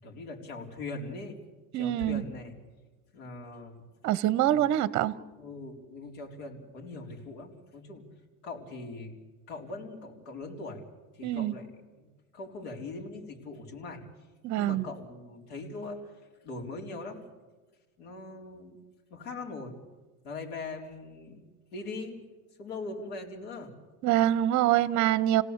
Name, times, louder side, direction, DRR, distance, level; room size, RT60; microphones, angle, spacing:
voice 1, 0.0-1.4 1.7-2.5 3.1-3.8 4.4-4.6 5.4-8.1 8.4-9.2 9.5-10.9 11.2-12.0 12.3-14.1 14.6-16.1 16.4-17.2 18.0-18.8 19.1-19.8 20.2-21.4 21.7-22.2 22.6-23.7, left 3 dB, 85° left, 1 dB, 4.1 m, -41 dB
voice 2, 1.7-2.2 4.0-5.2 11.2-11.5 14.4-14.8 24.0-25.4, right 13 dB, 40° right, 18 dB, 1.0 m, -25 dB
29.0 x 17.0 x 8.2 m, 1.3 s
supercardioid pair, 140°, 44 cm